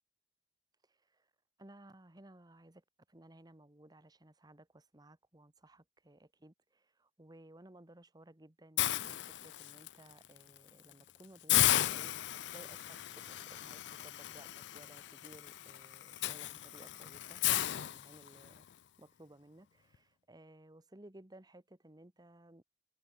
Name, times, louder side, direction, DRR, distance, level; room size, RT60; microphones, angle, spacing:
voice 1, 0.9-1.3 1.6-17.4 17.7-18.6 19.0-22.6, right 1 dB, 25° right, 1.3 m, -58 dB
Hiss, 8.8-9.9 10.4-10.6 10.9-11.0 11.5-18.6, left 14 dB, 80° left, 0.4 m, -34 dB
open air
head